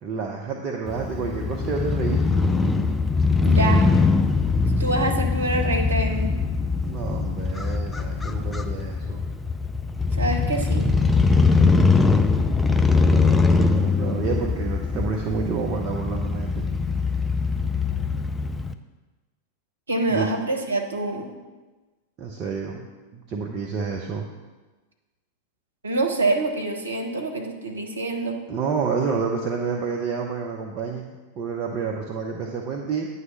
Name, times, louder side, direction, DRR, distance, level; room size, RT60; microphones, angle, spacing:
voice 1, 0.0-2.5 6.8-9.3 12.7-16.7 20.1-20.3 22.2-22.9 23.1-24.3 28.5-33.1, right 5 dB, 35° right, 0 dB, 0.7 m, -29 dB
Crow / Motorcycle, 0.9-18.7, left 4 dB, 10° left, 0.4 m, -22 dB
voice 2, 3.4-3.9 4.8-6.3 10.1-10.9 19.9-21.3 25.8-28.4, right 2 dB, 75° right, 3 dB, 0.9 m, -26 dB
9.3 x 3.2 x 5.8 m, 1.2 s
figure-of-eight pair, 90°, 0 cm